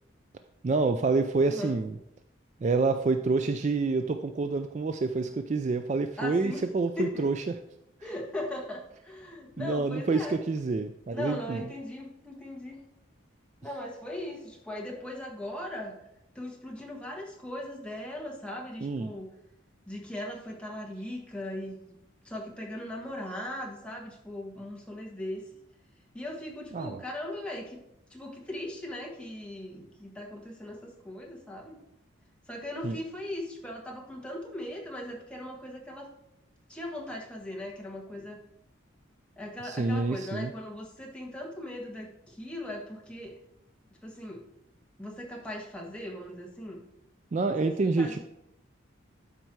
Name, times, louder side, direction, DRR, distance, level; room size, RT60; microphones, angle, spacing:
voice 1, 0.6-2.0 2.6-7.5 8.0-8.1 9.6-11.6 18.8-19.1 26.7-27.0 32.8-33.0 39.6-40.5 47.3-48.2, right 3 dB, 35° right, 8 dB, 0.3 m, -27 dB
voice 2, 6.2-6.6 7.0-7.3 8.0-10.4 11.1-12.8 13.6-15.9 16.3-19.3 19.9-21.8 22.2-25.4 26.1-27.8 28.1-31.8 32.5-36.1 36.7-38.4 39.4-43.4 44.0-44.4 45.0-46.8 47.5-48.2, left 1 dB, 5° left, -1 dB, 1.4 m, -39 dB
12.0 x 4.6 x 4.7 m, 0.81 s
head